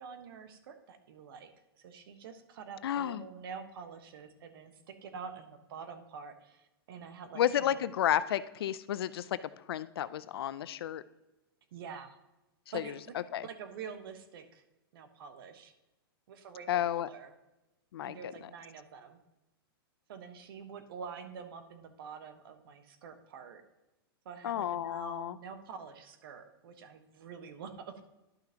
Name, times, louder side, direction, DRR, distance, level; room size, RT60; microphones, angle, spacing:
voice 1, 0.0-1.5 1.8-7.8 11.7-12.1 12.7-13.1 13.4-14.6 14.9-15.7 16.3-17.3 18.0-19.2 20.1-23.6 24.2-28.0, right 6 dB, 65° right, 8 dB, 1.2 m, -46 dB
voice 2, 2.8-3.2 7.4-9.4 9.7-11.0 12.7-13.5 16.7-17.1 17.9-18.2 24.4-25.4, left 11 dB, 75° left, 16 dB, 0.5 m, -32 dB
11.5 x 5.8 x 2.9 m, 0.99 s
hypercardioid pair, 120°, 13 cm